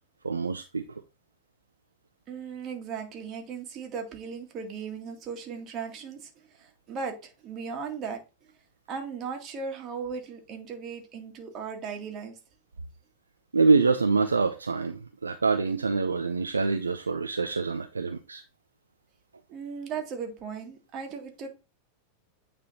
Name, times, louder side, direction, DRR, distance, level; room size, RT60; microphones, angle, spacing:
voice 1, 0.2-0.8 13.5-18.4, right 4 dB, 75° right, 0.5 m, -25 dB
voice 2, 2.3-8.2 8.9-12.3 19.5-21.5, right 6 dB, 30° right, 1.9 m, -37 dB
8.9 x 3.5 x 4.1 m
figure-of-eight pair, 90°, 0 cm